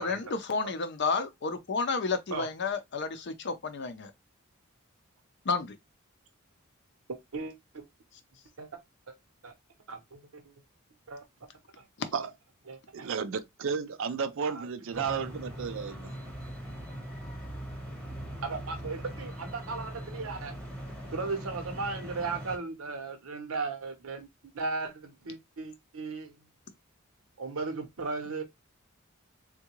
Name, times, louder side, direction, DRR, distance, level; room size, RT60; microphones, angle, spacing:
voice 1, 0.0-4.1 5.4-5.8, left 4 dB, 50° left, 0.5 m, -31 dB
voice 2, 7.1-7.9 8.6-8.8 9.1-9.2 9.4-9.5 9.9-10.5 11.1-11.2 11.8-11.9 12.7-13.1 14.5-15.1 18.4-20.5 21.1-26.4 27.4-28.4, right 4 dB, 80° right, 0.8 m, -37 dB
voice 3, 12.9-16.1, right 6 dB, 60° right, 0.4 m, -33 dB
sound 1, 14.9-22.6, right 1 dB, 5° left, 1.0 m, -41 dB
3.6 x 2.2 x 2.9 m
head